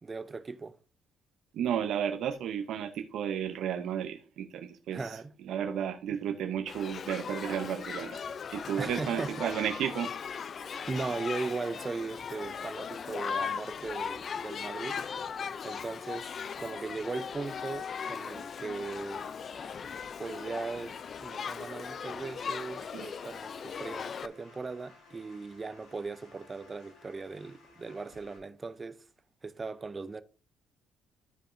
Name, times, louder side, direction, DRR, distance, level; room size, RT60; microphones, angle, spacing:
voice 1, 0.0-0.8 4.9-5.3 8.8-9.3 10.9-15.0 15.6-19.3 20.2-29.0 29.4-30.2, right 4 dB, 25° right, 0.5 m, -38 dB
voice 2, 1.5-5.2 5.4-8.2 8.5-10.1 22.9-23.1, right 9 dB, 70° right, 0.6 m, -33 dB
Shout / Human group actions, 6.7-24.3, left 6 dB, 45° left, 0.3 m, -38 dB
sound 1, 18.0-28.4, left 3 dB, 70° left, 4.6 m, -57 dB
13.0 x 4.8 x 2.6 m
cardioid pair, 105°, 0 cm